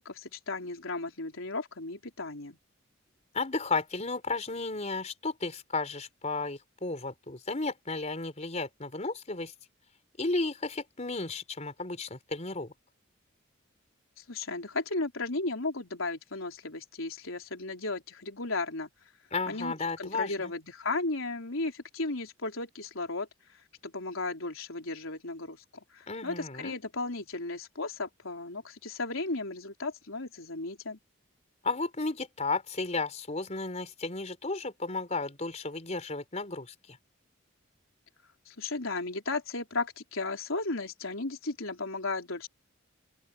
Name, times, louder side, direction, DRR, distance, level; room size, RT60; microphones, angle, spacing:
voice 1, 0.0-2.6 14.2-18.9 19.5-23.3 23.8-25.6 25.9-31.0 38.5-42.5, left 3 dB, 80° left, 3.9 m, -35 dB
voice 2, 3.3-9.5 10.2-12.7 19.3-20.5 26.1-26.7 31.6-37.0, left 3 dB, 35° left, 4.2 m, -33 dB
open air
head